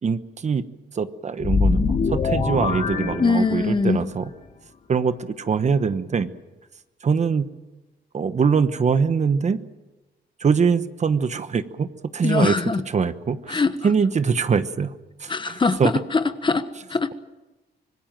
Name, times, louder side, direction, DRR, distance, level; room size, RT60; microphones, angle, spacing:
voice 1, 0.0-0.6 0.9-4.3 4.9-6.3 7.0-7.5 8.1-9.6 10.4-11.9 12.1-12.6 12.9-14.9 15.2-15.9, right 5 dB, 45° right, 12 dB, 1.1 m, -23 dB
sound 1, 1.4-3.9, left 4 dB, 50° left, 3.0 m, -23 dB
voice 2, 3.2-4.1 12.2-12.8 13.5-13.7 15.3-17.1, left 4 dB, 30° left, 11 dB, 1.3 m, -22 dB
26.0 x 20.0 x 7.5 m, 1.1 s
cardioid pair, 105°, 17 cm